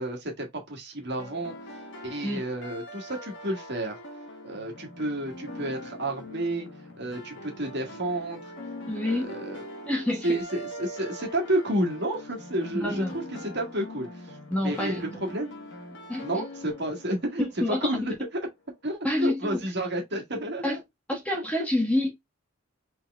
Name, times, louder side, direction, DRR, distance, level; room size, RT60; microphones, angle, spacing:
voice 1, 0.0-1.6 2.0-4.0 4.4-6.7 7.0-8.4 9.0-9.6 10.2-13.0 13.4-14.1 14.6-15.5 16.2-18.1 18.8-20.7 21.3-21.4, right 1 dB, 55° right, 1.6 m, -30 dB
sound 1, 1.2-18.1, left 1 dB, 60° left, 1.3 m, -42 dB
voice 2, 8.9-9.3 9.9-10.4 12.7-13.6 14.5-15.0 16.1-16.5 17.4-17.9 19.0-19.6 20.6-20.8 21.1-22.1, left 1 dB, 5° left, 1.2 m, -28 dB
4.0 x 4.0 x 2.3 m
head